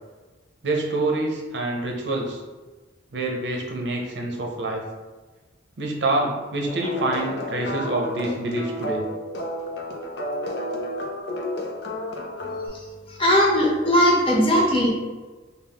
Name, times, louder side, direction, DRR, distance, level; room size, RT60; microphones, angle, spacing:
voice 1, 0.6-2.4 3.1-4.8 5.8-9.1, right 2 dB, 70° right, 0 dB, 0.6 m, -26 dB
sound 1, 6.7-12.7, left 1 dB, 65° left, 0.5 m, -31 dB
voice 2, 13.2-14.9, equal, 30° left, -3 dB, 0.7 m, -18 dB
3.5 x 2.3 x 3.5 m, 1.3 s
head